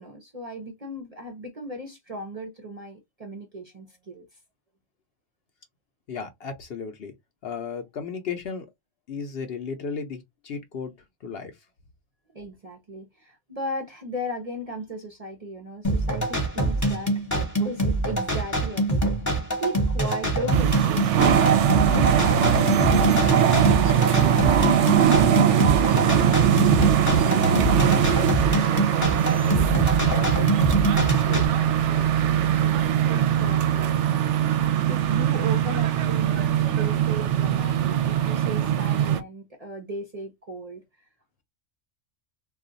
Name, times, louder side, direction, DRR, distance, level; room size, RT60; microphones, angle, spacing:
voice 1, 0.0-4.3 12.3-22.4 33.0-40.8, right 1 dB, 40° right, 0.6 m, -36 dB
voice 2, 6.1-7.1 7.4-8.7 9.1-10.9 11.2-11.6 23.1-26.5 26.8-28.6 29.3-30.5 31.3-32.7, left 6 dB, 60° left, 0.8 m, -37 dB
sound 1, 15.8-31.5, right 1 dB, 15° left, 0.8 m, -25 dB
sound 2, 20.5-39.2, right 9 dB, 70° right, 0.8 m, -21 dB
2.4 x 2.3 x 3.8 m
omnidirectional pair, 1.3 m